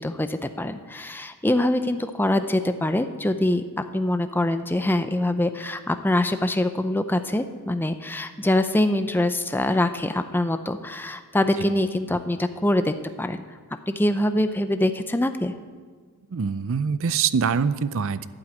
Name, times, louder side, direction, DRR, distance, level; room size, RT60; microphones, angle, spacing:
voice 1, 0.0-3.6 3.9-13.4 13.9-15.5, left 1 dB, 10° left, 9 dB, 0.5 m, -24 dB
voice 2, 16.3-18.3, right 6 dB, 60° right, 15 dB, 0.5 m, -24 dB
11.5 x 7.8 x 8.6 m, 1.5 s
head